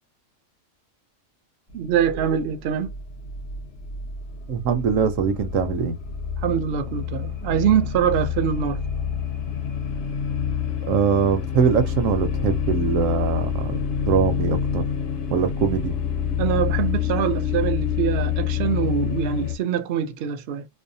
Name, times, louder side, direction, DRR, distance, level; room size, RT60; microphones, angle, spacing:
sound 1, 1.7-19.5, left 8 dB, 60° left, 0.9 m, -27 dB
voice 1, 1.7-2.9 6.4-8.8 16.4-20.7, right 9 dB, 65° right, 0.7 m, -24 dB
voice 2, 4.5-6.0 10.8-14.8 15.3-15.9, right 6 dB, 80° right, 1.0 m, -22 dB
2.6 x 2.1 x 2.6 m
omnidirectional pair, 1.3 m